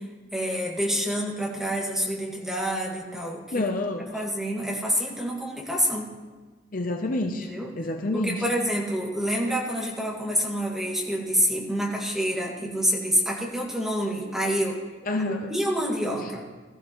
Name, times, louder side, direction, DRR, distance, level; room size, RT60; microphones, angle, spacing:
voice 1, 0.0-3.7 4.1-6.1 7.4-7.7 8.1-14.8 15.5-16.4, equal, 5° right, -3 dB, 2.1 m, -27 dB
voice 2, 3.5-4.3 6.7-7.5 7.8-8.5 15.1-15.6 16.2-16.3, left 2 dB, 45° left, 4 dB, 0.7 m, -28 dB
19.5 x 13.5 x 3.1 m, 1.4 s
head